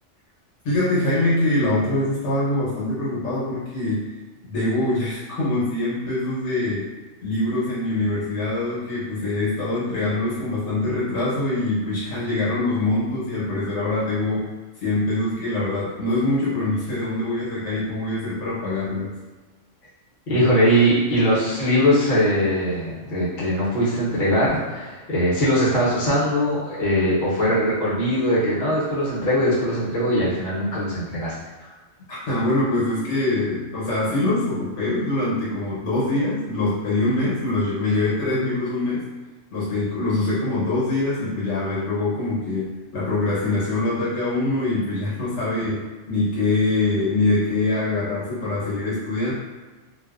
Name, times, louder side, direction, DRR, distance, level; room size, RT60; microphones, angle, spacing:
voice 1, 0.6-4.1 4.5-6.9 7.2-14.5 14.8-19.1 31.6-31.7 32.1-39.0 39.5-49.3, left 2 dB, 70° left, -8 dB, 1.2 m, -24 dB
voice 2, 20.3-31.3, equal, 45° left, -9 dB, 1.0 m, -21 dB
2.6 x 2.2 x 2.4 m, 1.3 s
omnidirectional pair, 1.3 m